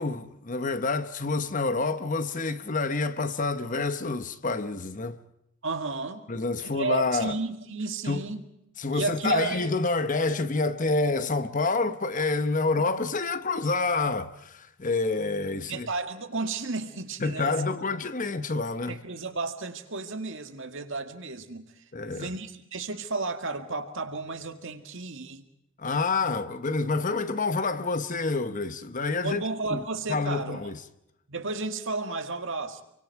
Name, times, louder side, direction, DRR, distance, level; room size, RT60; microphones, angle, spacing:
voice 1, 0.0-5.2 6.3-7.3 8.0-8.2 8.8-15.9 17.2-19.0 21.9-22.3 25.8-29.4 29.7-30.8, left 3 dB, 35° left, 0.9 m, -28 dB
voice 2, 5.6-6.3 6.6-8.5 8.9-9.7 15.7-17.6 18.9-25.5 29.2-30.6 31.3-32.8, right 3 dB, 60° right, 2.0 m, -33 dB
28.0 x 24.0 x 4.7 m
head